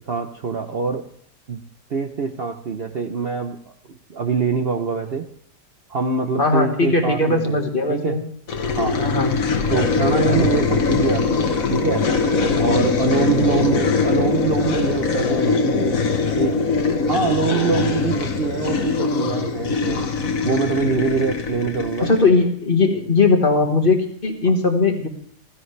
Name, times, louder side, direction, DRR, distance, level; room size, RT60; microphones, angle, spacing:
voice 1, 0.1-1.1 1.5-1.6 1.9-3.6 4.1-5.3 5.9-7.6 7.9-8.2 8.7-9.1 9.7-12.1 12.5-16.0 16.3-16.6 17.1-20.1 20.4-22.1, right 5 dB, 45° right, 5 dB, 0.8 m, -24 dB
voice 2, 6.4-8.2 9.0-9.4 22.0-25.1, left 3 dB, 35° left, 3 dB, 1.8 m, -19 dB
sound 1, 8.5-22.4, left 4 dB, 60° left, 1.6 m, -21 dB
16.0 x 15.5 x 3.3 m, 0.64 s
omnidirectional pair, 1.7 m